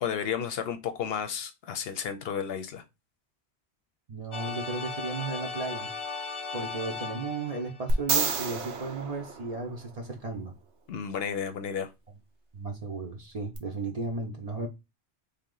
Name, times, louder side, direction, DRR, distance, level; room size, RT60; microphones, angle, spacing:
voice 1, 0.0-2.8 10.9-11.9, left 7 dB, 65° left, 0.7 m, -32 dB
voice 2, 4.1-5.9 6.5-10.5 12.5-14.7, right 3 dB, 40° right, 0.6 m, -34 dB
sound 1, 4.3-8.2, left 4 dB, 45° left, 0.4 m, -37 dB
sound 2, 7.9-10.1 13.5-13.6, right 4 dB, 85° right, 1.1 m, -30 dB
3.5 x 2.8 x 3.7 m
omnidirectional pair, 1.1 m